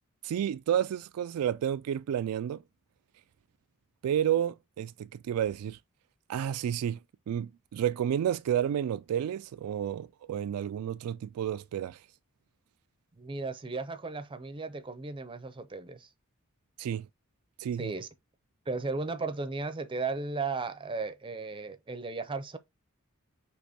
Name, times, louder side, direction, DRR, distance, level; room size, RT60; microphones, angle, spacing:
voice 1, 0.2-2.6 4.0-5.8 6.3-7.0 7.3-12.0 16.8-17.1 17.6-17.9, right 9 dB, 90° right, 0.3 m, -30 dB
voice 2, 13.1-16.1 17.8-18.1 18.7-22.6, right 3 dB, 25° right, 0.5 m, -35 dB
6.2 x 2.9 x 2.9 m
head